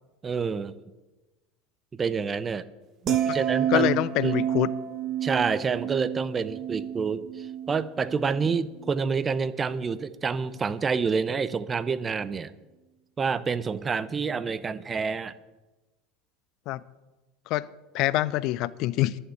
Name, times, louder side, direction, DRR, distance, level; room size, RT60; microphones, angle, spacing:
voice 1, 0.2-0.8 1.9-2.7 3.3-4.3 5.2-12.5 13.2-15.3, right 5 dB, 25° right, 0.7 m, -28 dB
sound 1, 3.1-9.3 9.7-10.0, right 10 dB, 45° right, 1.2 m, -30 dB
voice 2, 3.7-4.7 16.7-16.8 17.5-17.7 17.9-19.2, left 16 dB, 55° left, 0.5 m, -25 dB
11.0 x 6.5 x 8.8 m
hypercardioid pair, 80°, 0 cm